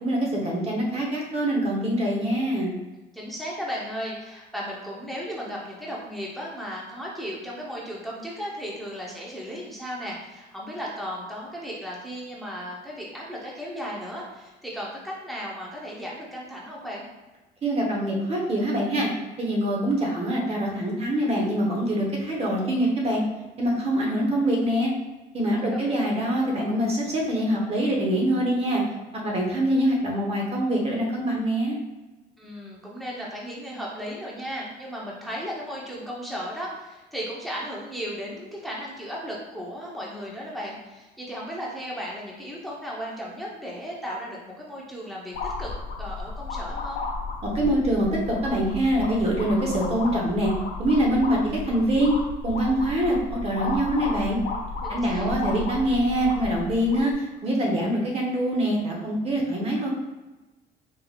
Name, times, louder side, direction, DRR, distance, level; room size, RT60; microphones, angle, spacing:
voice 1, 0.0-2.7 17.6-19.1 19.4-23.2 23.6-24.9 25.3-28.8 29.2-31.8 47.4-50.5 50.8-52.2 52.4-54.4 54.9-59.9, right 1 dB, 35° right, -1 dB, 1.1 m, -24 dB
voice 2, 3.1-17.1 25.6-26.1 32.4-45.7 46.0-47.1 54.8-55.3, equal, ahead, -5 dB, 0.9 m, -35 dB
sound 1, 45.3-57.1, left 3 dB, 75° left, 0.9 m, -33 dB
4.5 x 3.5 x 2.4 m, 1.1 s
cardioid pair, 110°, 17 cm